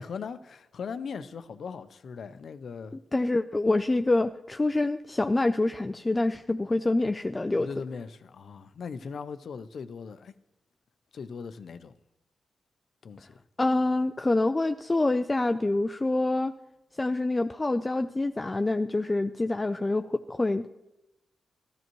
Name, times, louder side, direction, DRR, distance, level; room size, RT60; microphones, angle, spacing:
voice 1, 0.0-3.0 7.6-10.3 11.1-12.0 13.0-13.4, left 5 dB, 70° left, 0.6 m, -39 dB
voice 2, 3.1-7.7 13.6-16.5 17.0-20.7, left 2 dB, 25° left, 0.4 m, -26 dB
14.0 x 13.5 x 3.1 m
cardioid pair, 70°, 0 cm